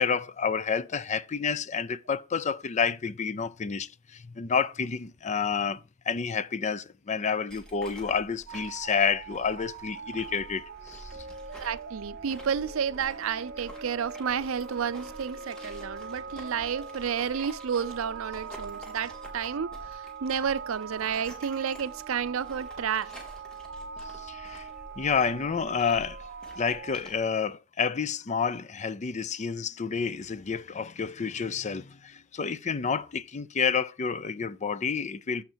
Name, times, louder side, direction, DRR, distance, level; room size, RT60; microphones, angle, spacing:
voice 1, 0.0-11.1 24.1-24.7 25.0-26.2 26.6-35.4, left 6 dB, 35° left, 0.5 m, -29 dB
sound 1, 7.5-27.2, equal, 5° left, 3.1 m, -49 dB
sound 2, 8.5-27.0, right 5 dB, 55° right, 1.5 m, -42 dB
voice 2, 11.6-23.1, right 7 dB, 85° right, 0.5 m, -31 dB
15.5 x 5.7 x 2.8 m
head